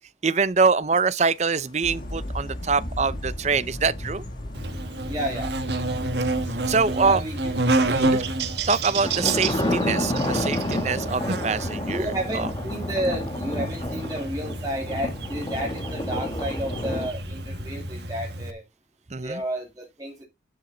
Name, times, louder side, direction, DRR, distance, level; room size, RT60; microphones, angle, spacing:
voice 1, 0.2-4.2 6.7-7.2 8.1-8.2 8.7-12.5 13.9-14.0 19.1-19.4, right 4 dB, 40° right, 0.6 m, -24 dB
sound 1, 1.8-17.9, left 1 dB, 50° left, 1.5 m, -38 dB
sound 2, 4.2-4.5 6.0-6.1 6.5-6.6 7.6-7.9 8.9-17.1, left 1 dB, 25° left, 1.5 m, -30 dB
Buzz, 4.5-18.5, right 2 dB, 65° right, 1.8 m, -29 dB
voice 2, 5.0-5.5 7.0-7.4 7.8-8.2 11.9-18.6 19.2-20.2, right 1 dB, 20° right, 2.1 m, -31 dB
10.5 x 7.1 x 3.9 m
head